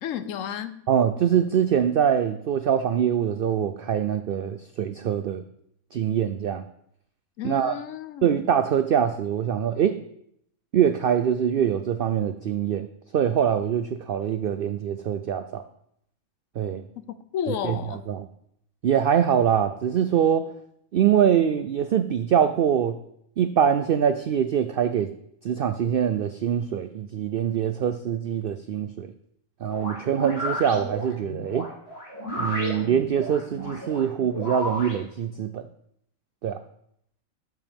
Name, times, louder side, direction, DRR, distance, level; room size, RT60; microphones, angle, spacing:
voice 1, 0.0-0.8 7.4-8.5 17.1-18.0, left 9 dB, 70° left, 13 dB, 1.0 m, -32 dB
voice 2, 0.9-5.4 5.9-6.6 7.4-7.7 8.2-10.0 10.7-12.9 13.1-15.6 16.6-16.8 17.6-17.8 18.1-18.2 18.8-20.5 20.9-23.0 23.4-25.1 25.4-29.1 29.6-31.7 32.4-35.7 36.4-36.6, right 8 dB, 75° right, 10 dB, 0.5 m, -23 dB
sound 1, 29.7-35.0, equal, 45° left, 4.8 m, -33 dB
12.0 x 7.9 x 3.5 m, 0.73 s
omnidirectional pair, 1.5 m